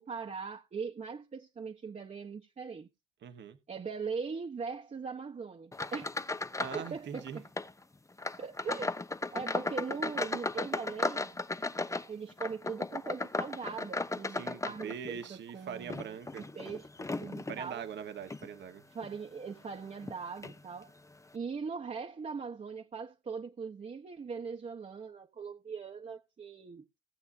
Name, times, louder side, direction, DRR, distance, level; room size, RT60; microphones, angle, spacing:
voice 1, 0.0-2.9 3.7-6.2 6.7-7.4 8.4-8.9 9.3-11.3 12.1-17.8 18.9-20.9 21.3-27.0, right 5 dB, 35° right, 1.2 m, -40 dB
voice 2, 3.2-3.6 6.6-7.4 14.4-16.4 17.5-18.8, right 7 dB, 65° right, 1.3 m, -42 dB
sound 1, 5.7-6.9 7.1-7.7 8.2-15.3 15.8-17.6 18.2-18.5 19.0-19.1 20.0-20.1 20.4-20.6, left 3 dB, 15° left, 0.8 m, -36 dB
17.5 x 8.0 x 2.7 m
cardioid pair, 90°, 20 cm